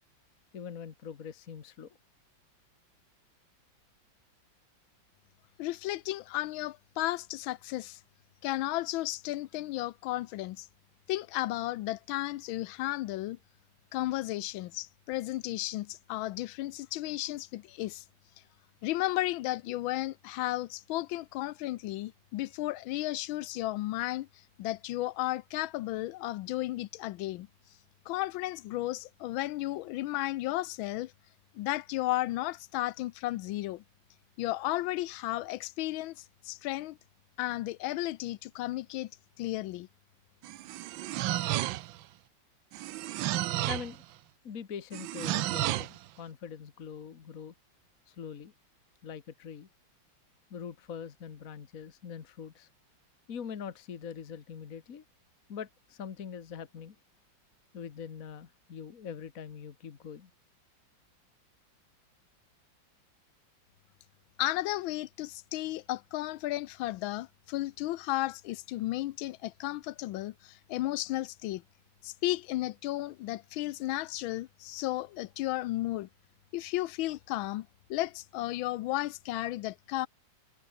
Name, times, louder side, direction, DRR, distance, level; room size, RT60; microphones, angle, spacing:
voice 1, 0.5-2.0 43.7-44.0 44.4-47.5 48.1-48.5 49.0-49.7 50.5-52.7 53.3-55.0 55.5-57.0 57.7-60.3, left 7 dB, 45° left, 1.7 m, -43 dB
voice 2, 5.6-8.0 8.4-10.7 11.1-13.4 13.9-18.0 18.8-24.3 24.6-27.5 28.1-31.1 31.5-33.8 34.4-37.0 37.4-39.1 39.4-39.9 64.4-71.6 72.0-76.1 76.5-80.1, left 16 dB, 90° left, 1.4 m, -34 dB
sound 1, 40.4-42.0 42.7-44.0 44.9-46.0, right 15 dB, 80° right, 1.4 m, -32 dB
omnidirectional pair, 2.1 m